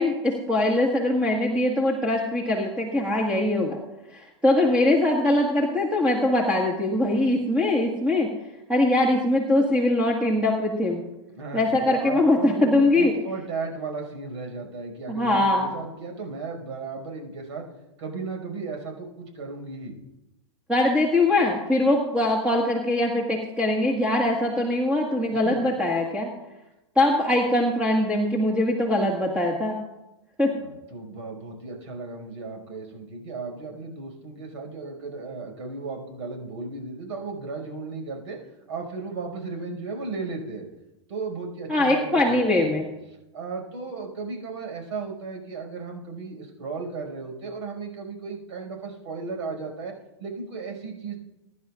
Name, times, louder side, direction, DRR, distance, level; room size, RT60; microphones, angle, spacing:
voice 1, 0.0-3.8 4.1-8.3 8.7-11.0 11.5-13.1 15.1-15.7 20.7-26.3 26.9-29.8 30.4-30.5 41.7-42.9, left 1 dB, 5° right, -2 dB, 1.7 m, -22 dB
voice 2, 11.3-17.7 18.0-19.9 25.4-25.6 30.5-40.7 41.1-42.8 43.3-51.2, right 4 dB, 85° right, 2 dB, 5.6 m, -35 dB
23.0 x 11.0 x 2.5 m, 0.97 s
supercardioid pair, 140°, 15 cm